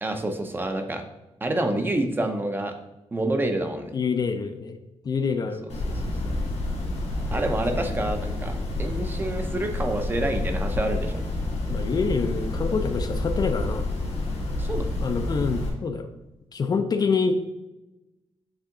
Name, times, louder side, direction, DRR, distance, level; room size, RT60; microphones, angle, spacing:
voice 1, 0.0-1.0 1.4-2.7 3.1-3.9 5.9-6.4 7.3-11.2 14.6-14.9, right 1 dB, 20° right, 5 dB, 0.6 m, -28 dB
voice 2, 3.9-4.8 5.0-5.6 11.7-13.9 15.0-16.1 16.5-17.3, left 5 dB, 40° left, 7 dB, 0.4 m, -26 dB
sound 1, 5.7-15.7, left 2 dB, 85° left, 2.1 m, -29 dB
7.4 x 3.4 x 3.7 m, 1.0 s
wide cardioid pair, 170°, 11 cm